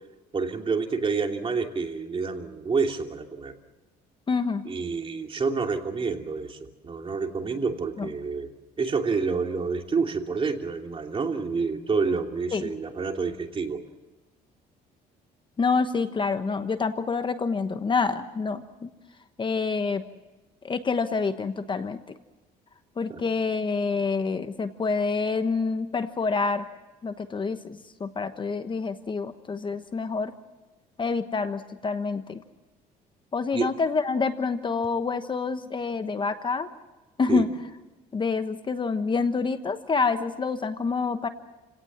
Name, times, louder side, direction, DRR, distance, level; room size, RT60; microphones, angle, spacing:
voice 1, 0.3-3.5 4.6-8.5 8.8-13.8 23.1-23.2 33.5-33.7 37.3-37.5, right 4 dB, 30° right, 3 dB, 2.8 m, -28 dB
voice 2, 4.3-4.7 8.0-8.1 12.5-12.6 15.6-18.9 19.4-20.0 20.6-22.0 23.0-26.6 27.0-30.3 31.0-32.4 33.3-36.7 37.2-37.5 38.1-41.3, left 4 dB, 30° left, 9 dB, 1.2 m, -27 dB
29.5 x 17.5 x 7.4 m, 1.1 s
cardioid pair, 110°, 17 cm